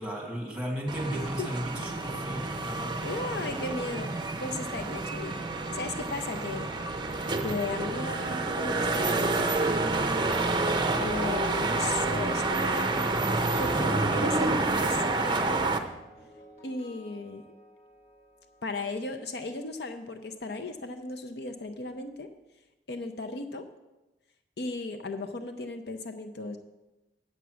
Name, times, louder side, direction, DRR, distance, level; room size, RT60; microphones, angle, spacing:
voice 1, 0.0-3.0, equal, 5° right, -1 dB, 1.7 m, -35 dB
sound 1, 0.9-15.8, right 2 dB, 25° right, 0.6 m, -28 dB
voice 2, 1.1-1.5 3.0-4.1 4.4-5.3 5.7-6.7 7.4-9.5 11.0-13.1 13.6-15.7 16.6-17.4 18.6-22.3 22.9-23.6 24.6-26.6, left 2 dB, 60° left, 7 dB, 0.6 m, -36 dB
sound 2, 7.4-21.5 21.7-22.0, right 1 dB, 40° left, 3.1 m, -53 dB
8.1 x 7.0 x 6.2 m, 1.0 s
head